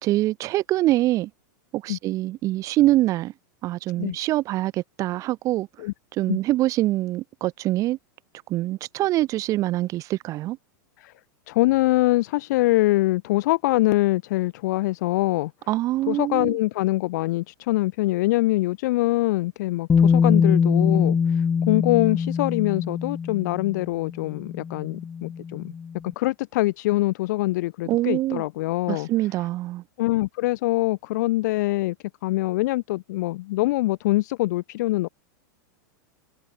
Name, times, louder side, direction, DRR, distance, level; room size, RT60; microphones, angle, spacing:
voice 1, 0.0-1.3 1.7-3.3 3.6-5.7 6.2-8.0 8.5-10.6 15.7-16.6 27.9-28.4 28.9-29.8, right 16 dB, 30° right, 3.0 m, -24 dB
voice 2, 11.5-15.5 16.1-25.7 26.0-29.1 30.0-31.9 32.2-35.1, left 18 dB, 55° left, 3.2 m, -24 dB
Bass guitar, 19.9-25.9, left 6 dB, 15° left, 1.8 m, -23 dB
supercardioid pair, 160°, 11 cm